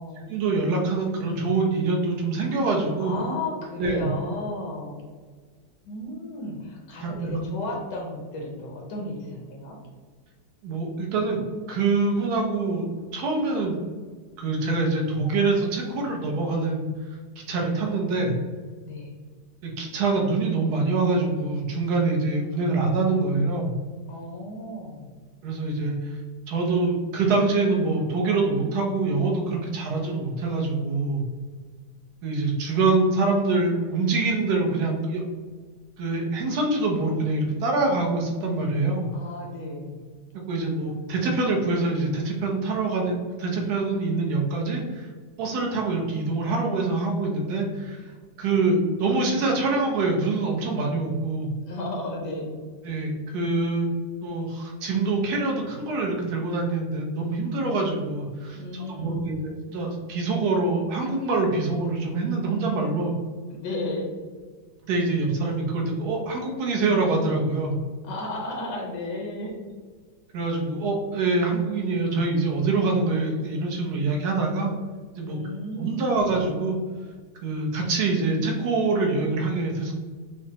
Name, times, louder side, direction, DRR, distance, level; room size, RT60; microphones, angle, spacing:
voice 1, 0.3-3.2 3.8-4.1 7.0-7.4 10.6-11.4 11.7-12.9 13.1-13.8 14.4-16.9 17.5-18.3 19.6-23.7 25.4-26.2 26.5-31.2 32.2-35.2 36.0-39.1 40.5-45.1 45.4-48.0 48.4-51.5 52.8-53.9 54.2-63.1 64.8-67.8 70.3-74.7 75.2-75.4 75.8-76.8 77.4-79.9, right 3 dB, 70° right, 0 dB, 1.2 m, -25 dB
voice 2, 3.0-5.0 5.8-9.8 18.8-19.1 24.1-25.1 39.1-40.0 51.7-52.6 58.5-59.4 63.5-64.1 68.0-69.7 75.2-76.1, left 2 dB, 85° left, -2 dB, 1.4 m, -34 dB
5.2 x 2.0 x 2.8 m, 1.5 s
omnidirectional pair, 1.8 m